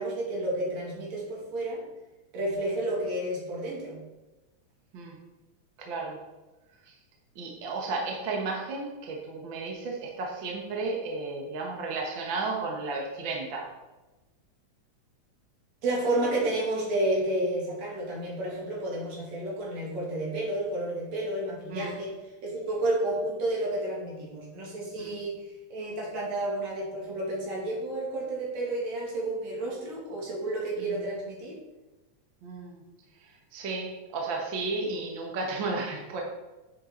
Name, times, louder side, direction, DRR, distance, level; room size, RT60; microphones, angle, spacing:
voice 1, 0.0-1.8 2.3-4.0 15.8-22.1 22.4-25.4 25.7-31.6, right 1 dB, 65° right, -4 dB, 3.7 m, -31 dB
voice 2, 5.8-6.2 6.9-7.0 7.4-13.7 21.7-21.9 25.0-25.1 30.8-31.0 32.4-32.8 33.2-36.2, right 3 dB, 50° right, 0 dB, 1.8 m, -33 dB
10.0 x 7.8 x 3.9 m, 1.1 s
omnidirectional pair, 3.3 m